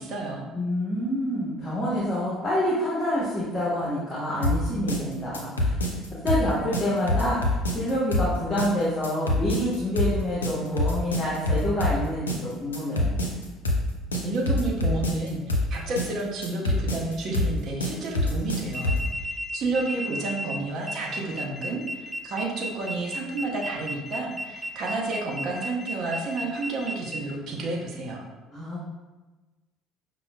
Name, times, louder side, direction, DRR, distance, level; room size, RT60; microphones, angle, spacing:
voice 1, 0.0-0.5 14.1-19.2 19.5-28.2, right 3 dB, 50° right, -2 dB, 0.6 m, -31 dB
voice 2, 0.5-5.7 6.2-13.1 28.5-28.8, equal, 25° left, -7 dB, 0.9 m, -27 dB
sound 1, 4.4-19.1, left 1 dB, 90° left, 0.4 m, -26 dB
sound 2, 18.7-27.2, equal, 10° right, 0.4 m, -34 dB
5.6 x 2.0 x 2.2 m, 1.2 s
figure-of-eight pair, 60°, 0 cm